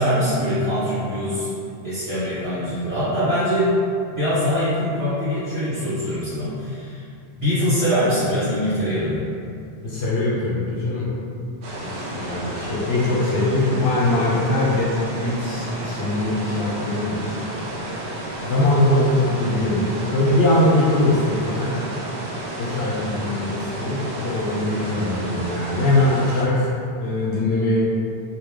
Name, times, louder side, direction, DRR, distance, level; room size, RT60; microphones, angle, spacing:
voice 1, 0.0-1.5 1.8-3.7 4.1-7.0 7.4-9.3, equal, 30° right, -13 dB, 1.0 m, -23 dB
voice 2, 9.8-11.1 11.8-17.4 18.4-21.8 22.6-26.7 27.0-27.8, left 1 dB, 75° left, -6 dB, 0.9 m, -21 dB
sound 1, 11.6-26.4, right 1 dB, 90° right, 0.9 m, -31 dB
3.1 x 2.3 x 3.5 m, 2.5 s
omnidirectional pair, 1.1 m